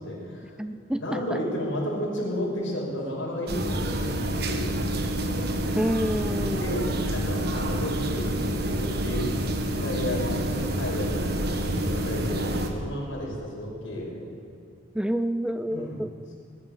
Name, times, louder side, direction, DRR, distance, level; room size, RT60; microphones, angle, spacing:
voice 1, 0.0-0.6 1.0-5.0 6.3-9.3 9.7-11.2 11.7-14.2 15.7-16.0, equal, 80° left, -3 dB, 5.3 m, -33 dB
voice 2, 0.6-1.4 5.8-6.7 14.9-16.1, equal, 5° right, 11 dB, 0.3 m, -28 dB
sound 1, 3.5-12.7, right 1 dB, 50° right, 1.4 m, -28 dB
20.0 x 11.0 x 6.7 m, 2.5 s
head